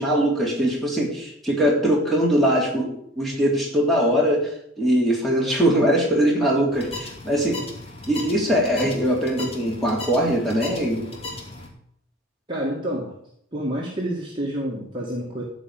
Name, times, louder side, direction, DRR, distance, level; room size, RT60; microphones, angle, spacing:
voice 1, 0.0-4.5 4.8-7.6 8.1-11.1, equal, ahead, -3 dB, 3.5 m, -21 dB
sound 1, 6.7-11.7, left 2 dB, 30° left, 2.7 m, -36 dB
voice 2, 12.5-13.1 13.5-15.4, right 1 dB, 25° right, -3 dB, 2.1 m, -28 dB
14.0 x 5.3 x 9.0 m, 0.71 s
head